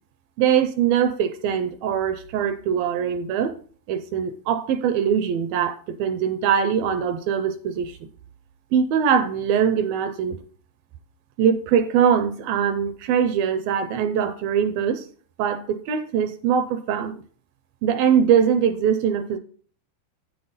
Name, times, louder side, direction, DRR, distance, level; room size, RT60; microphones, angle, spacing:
voice 1, 0.4-3.5 3.9-8.0 8.7-10.4 11.4-15.1 15.4-17.2 17.8-19.4, right 8 dB, 80° right, 2.3 m, -22 dB
9.0 x 7.8 x 4.0 m
omnidirectional pair, 4.6 m